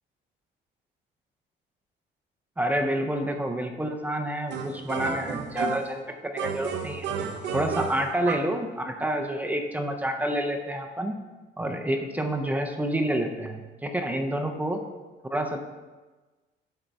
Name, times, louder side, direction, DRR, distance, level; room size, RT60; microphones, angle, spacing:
voice 1, 2.6-7.0 7.5-11.1 11.6-14.8 15.3-15.7, right 1 dB, 10° right, 4 dB, 0.5 m, -28 dB
sound 1, 4.5-6.0 6.4-8.6, right 6 dB, 65° right, 0.7 m, -32 dB
11.0 x 3.8 x 4.6 m, 1.2 s
cardioid pair, 165°, 19 cm